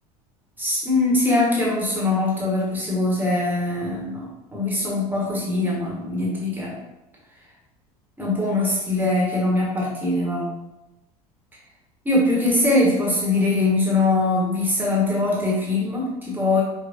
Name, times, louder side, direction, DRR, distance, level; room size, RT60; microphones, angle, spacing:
voice 1, 0.6-6.7 8.2-10.5 12.0-16.6, left 2 dB, 10° right, -5 dB, 1.2 m, -22 dB
5.4 x 3.0 x 2.6 m, 0.94 s
figure-of-eight pair, 70°, 20 cm